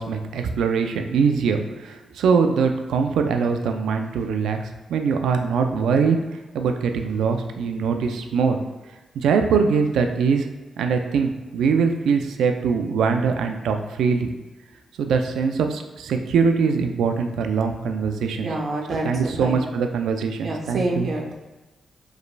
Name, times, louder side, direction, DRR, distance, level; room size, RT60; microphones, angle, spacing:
voice 1, 0.0-4.6 4.9-6.2 6.5-8.6 9.2-10.5 10.8-14.3 15.0-18.5 19.0-21.1, right 5 dB, 90° right, 5 dB, 0.4 m, -22 dB
voice 2, 18.4-19.6 20.4-21.3, right 2 dB, 65° right, 0 dB, 0.8 m, -27 dB
4.9 x 3.2 x 2.2 m, 1.2 s
cardioid pair, 75°, 0 cm